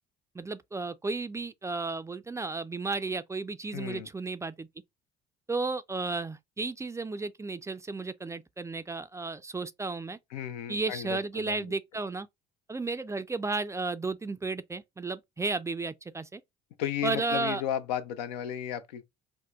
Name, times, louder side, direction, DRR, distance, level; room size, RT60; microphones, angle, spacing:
voice 1, 0.3-4.7 5.5-10.2 10.7-12.3 12.7-16.4 17.0-17.6, right 3 dB, 15° right, 0.3 m, -33 dB
voice 2, 3.7-4.1 10.3-11.7 16.8-19.0, left 10 dB, 85° left, 0.5 m, -34 dB
4.3 x 2.1 x 2.3 m
hypercardioid pair, 55°, 21 cm